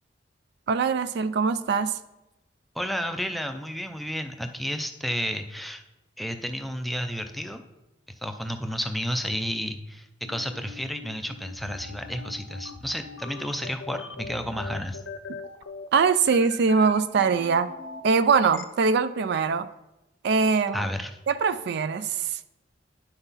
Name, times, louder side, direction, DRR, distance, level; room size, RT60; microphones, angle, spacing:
voice 1, 0.7-1.9 15.9-17.7 18.0-19.7 20.2-20.9 21.3-22.1, right 5 dB, 60° right, 12 dB, 0.4 m, -22 dB
voice 2, 2.8-5.8 6.2-7.6 8.2-15.0 20.7-21.1, equal, ahead, 6 dB, 0.4 m, -31 dB
sound 1, 10.2-18.6, left 4 dB, 80° left, 0.7 m, -41 dB
9.8 x 5.8 x 4.1 m, 0.95 s
head